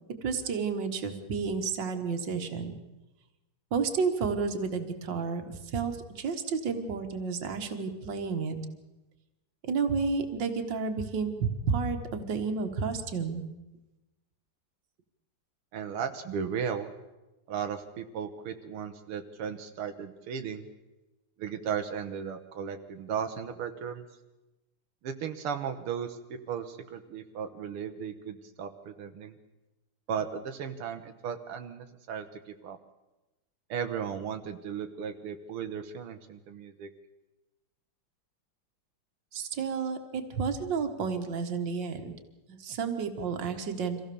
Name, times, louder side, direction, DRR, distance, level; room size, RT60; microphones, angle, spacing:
voice 1, 0.2-2.8 3.7-8.6 9.7-11.3 11.7-13.4 39.3-42.1 42.5-44.0, right 5 dB, 60° right, 6 dB, 2.2 m, -31 dB
voice 2, 15.7-16.9 17.5-20.7 21.4-24.0 25.0-29.4 30.1-32.3 32.6-32.8 33.7-36.9, right 7 dB, 90° right, 6 dB, 2.0 m, -36 dB
24.5 x 16.0 x 7.0 m, 1.0 s
omnidirectional pair, 2.4 m